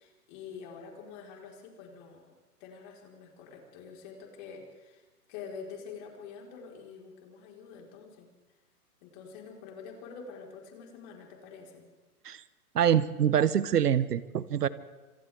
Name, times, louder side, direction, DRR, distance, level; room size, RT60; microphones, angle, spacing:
voice 1, 0.0-2.3 2.6-8.3 9.0-11.9, left 6 dB, 30° left, 0 dB, 4.4 m, -46 dB
voice 2, 12.7-14.7, right 9 dB, 85° right, 15 dB, 1.2 m, -25 dB
28.5 x 26.5 x 3.6 m, 1.2 s
hypercardioid pair, 155°, 46 cm